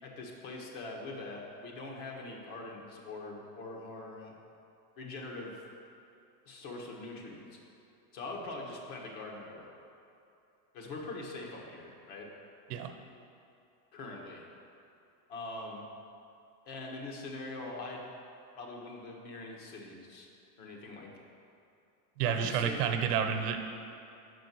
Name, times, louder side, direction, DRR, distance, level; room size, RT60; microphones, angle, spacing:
voice 1, 0.0-4.4 5.0-5.6 6.4-7.6 8.1-9.7 10.7-12.3 13.9-14.4 15.3-15.8 16.6-18.1 18.6-20.3 20.6-21.1 22.2-22.9, left 2 dB, 60° left, -1 dB, 1.6 m, -43 dB
voice 2, 22.2-23.6, right 8 dB, 75° right, 6 dB, 0.9 m, -30 dB
6.2 x 5.1 x 6.1 m, 2.7 s
supercardioid pair, 120°, 47 cm